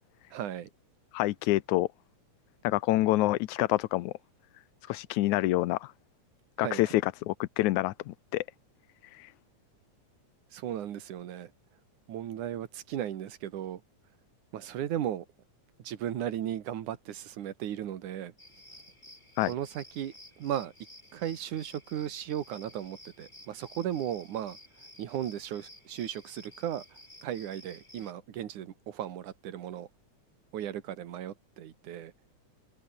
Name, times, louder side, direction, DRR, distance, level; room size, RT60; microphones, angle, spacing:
voice 1, 0.3-0.7 6.6-6.9 10.5-11.5 12.1-13.8 14.5-15.2 15.8-18.3 19.4-20.1 20.4-20.7 21.1-24.6 25.0-26.8 27.2-29.9 30.5-32.1, right 11 dB, 80° right, 3.1 m, -36 dB
voice 2, 1.1-1.9 2.6-4.1 4.9-5.9 6.6-8.4 9.0-9.3 19.4-19.5, left 17 dB, 80° left, 2.1 m, -27 dB
sound 1, 18.4-28.1, left 1 dB, 15° left, 8.2 m, -53 dB
open air
omnidirectional pair, 3.5 m